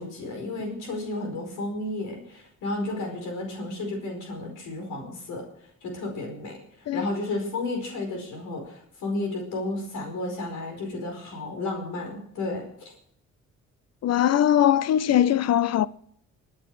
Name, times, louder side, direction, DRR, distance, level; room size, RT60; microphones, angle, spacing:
voice 1, 0.0-5.4 5.8-12.9, left 2 dB, 85° left, 5.0 m, -32 dB
voice 2, 14.0-15.9, left 11 dB, 55° left, 0.5 m, -21 dB
21.5 x 8.8 x 4.9 m
cardioid pair, 90°, 30 cm